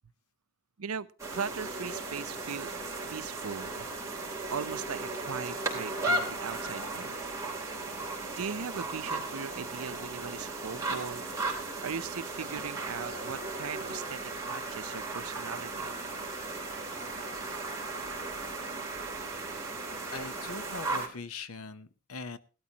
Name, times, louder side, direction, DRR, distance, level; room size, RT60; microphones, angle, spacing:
voice 1, 0.8-2.7 3.1-7.2 8.3-11.2 11.8-14.2 14.5-15.9, right 6 dB, 80° right, 14 dB, 0.7 m, -39 dB
sound 1, 1.2-21.1, right 2 dB, 15° right, 3.3 m, -36 dB
voice 2, 20.1-22.4, left 3 dB, 80° left, 13 dB, 0.9 m, -41 dB
18.0 x 12.5 x 2.9 m, 0.34 s
head